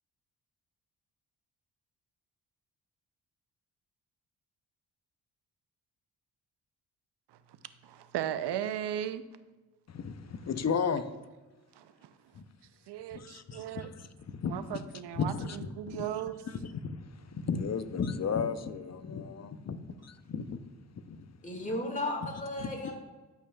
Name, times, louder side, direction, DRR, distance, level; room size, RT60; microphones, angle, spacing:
voice 1, 7.8-9.2 11.8-12.1 12.9-13.9 14.4-16.4, right 10 dB, 65° right, 12 dB, 0.7 m, -36 dB
voice 2, 9.9-11.0 12.3-12.4 13.1-14.1 14.3-14.8 15.2-15.6 15.9-16.1 16.7-17.0 17.3-20.6 21.1-21.2 22.6-22.9, left 6 dB, 35° left, 11 dB, 0.7 m, -34 dB
voice 3, 21.4-22.9, left 1 dB, 15° left, 1 dB, 2.1 m, -34 dB
13.5 x 5.7 x 2.4 m, 1.2 s
supercardioid pair, 55°, 44 cm